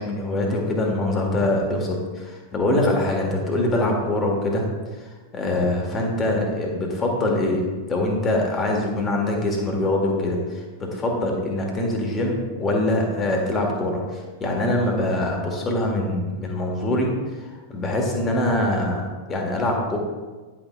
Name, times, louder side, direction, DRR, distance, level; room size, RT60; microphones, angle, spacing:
voice 1, 0.0-4.6 5.0-7.6 7.9-17.1 17.4-20.0, left 1 dB, 25° left, 0 dB, 1.6 m, -24 dB
10.5 x 6.1 x 2.5 m, 1.3 s
figure-of-eight pair, 90°, 0 cm